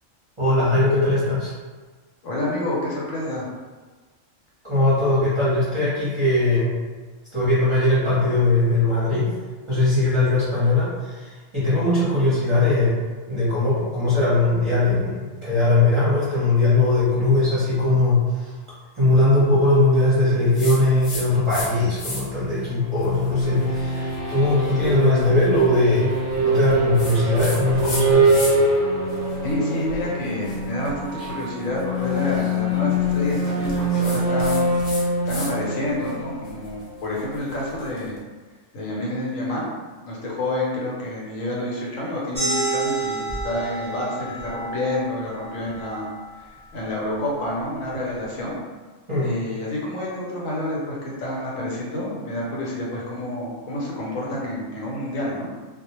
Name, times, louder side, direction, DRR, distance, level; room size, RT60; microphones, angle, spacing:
voice 1, 0.4-1.5 4.6-6.7 7.3-9.3 9.7-11.1 11.5-12.9 13.3-18.2 19.0-26.2 26.4-28.3 49.1-49.3, left 2 dB, 30° right, -11 dB, 0.7 m, -20 dB
voice 2, 2.2-3.5 29.4-38.2 38.7-39.7 40.1-46.1 46.4-48.6 49.2-55.5, left 1 dB, 80° left, -4 dB, 1.1 m, -29 dB
sound 1, 20.5-21.7 21.9-22.5 23.0-28.8 29.1-35.5 35.8-38.0, left 2 dB, 55° left, 0.7 m, -36 dB
sound 2, 22.5-37.2, right 1 dB, 85° right, 0.4 m, -24 dB
sound 3, 42.3-47.5, right 2 dB, 10° right, 1.1 m, -30 dB
2.3 x 2.1 x 2.9 m, 1.4 s
omnidirectional pair, 1.4 m